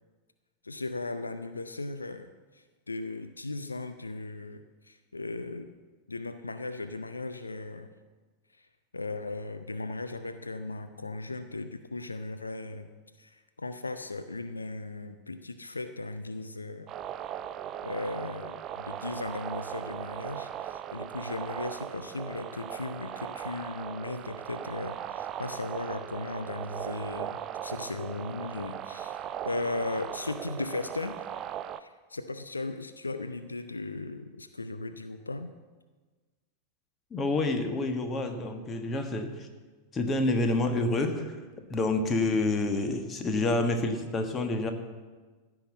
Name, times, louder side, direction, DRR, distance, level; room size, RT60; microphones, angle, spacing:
voice 1, 0.6-5.7 6.1-7.9 8.6-8.7 8.9-12.9 13.2-16.9 17.8-29.2 29.4-31.2 31.8-35.5, left 2 dB, 80° left, 10 dB, 0.6 m, -37 dB
sound 1, 16.9-31.8, right 10 dB, 30° right, 0.5 m, -38 dB
voice 2, 37.1-39.5 39.9-41.4 41.7-44.7, left 2 dB, 25° left, 6 dB, 1.5 m, -28 dB
15.5 x 5.9 x 8.1 m, 1.3 s
figure-of-eight pair, 90°, 0 cm